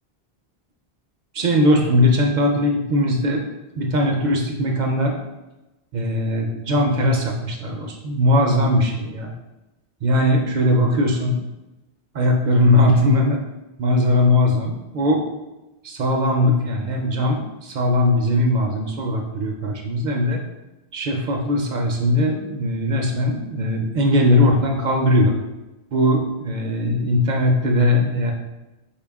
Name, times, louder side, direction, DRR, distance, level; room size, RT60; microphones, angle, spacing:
voice 1, 1.3-3.4 3.8-5.2 5.9-9.3 10.0-11.4 12.1-13.4 13.8-15.3 15.8-20.4 20.9-25.4 25.9-28.3, left 1 dB, 55° right, 1 dB, 0.5 m, -19 dB
4.4 x 2.2 x 3.4 m, 1.0 s
omnidirectional pair, 1.1 m